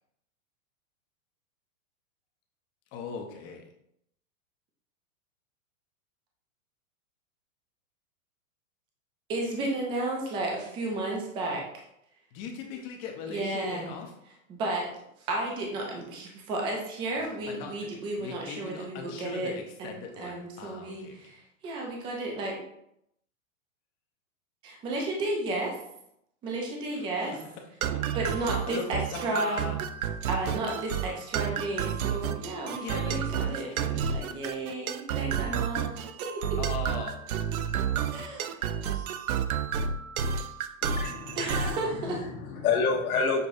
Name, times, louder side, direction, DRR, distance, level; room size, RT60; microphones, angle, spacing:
voice 1, 2.9-3.6 12.3-14.1 17.2-17.7 18.2-21.2 28.7-29.8 30.4-30.5 32.1-32.2 32.7-34.1 36.6-37.2, left 5 dB, 30° left, 2 dB, 0.7 m, -39 dB
voice 2, 9.3-11.8 13.3-14.0 14.5-14.9 15.3-22.6 24.6-25.8 26.4-27.4 28.1-29.7 30.3-35.9 36.2-36.6 38.1-38.6 41.4-42.2, right 2 dB, 10° right, 0 dB, 0.4 m, -33 dB
sound 1, 27.8-41.9, right 8 dB, 85° right, 0.6 m, -31 dB
voice 3, 40.8-41.8 42.3-43.5, left 5 dB, 90° left, 1 dB, 1.2 m, -28 dB
6.7 x 3.0 x 2.5 m, 0.76 s
supercardioid pair, 145°, 42 cm